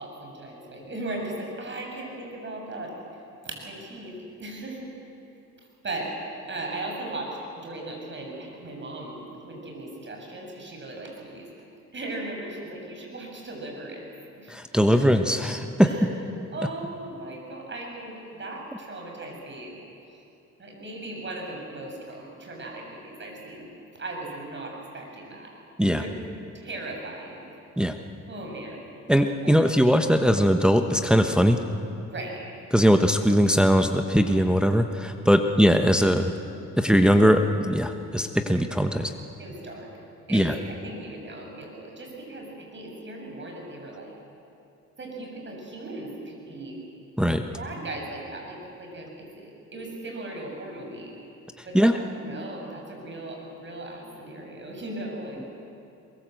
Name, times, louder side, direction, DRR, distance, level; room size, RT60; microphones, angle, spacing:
voice 1, 0.0-2.9 3.4-4.1 4.4-4.9 5.8-6.1 6.5-11.5 11.9-14.1 14.4-14.5 15.8-16.2 16.5-19.7 20.6-23.7 24.0-25.5 26.0-26.1 26.5-27.5 28.3-28.8 32.1-32.4 35.3-35.6 38.4-38.5 39.4-39.9 40.3-44.1 45.0-46.8 47.5-51.1 51.7-51.9 52.2-55.4, right 2 dB, 40° right, 0 dB, 6.8 m, -37 dB
voice 2, 14.5-15.9 25.8-26.0 27.8-27.9 29.1-31.6 32.7-36.3 36.8-39.1 40.3-40.6 47.2-47.4 51.7-52.0, equal, 5° right, 6 dB, 1.2 m, -20 dB
22.5 x 21.0 x 7.8 m, 2.6 s
cardioid pair, 90°, 30 cm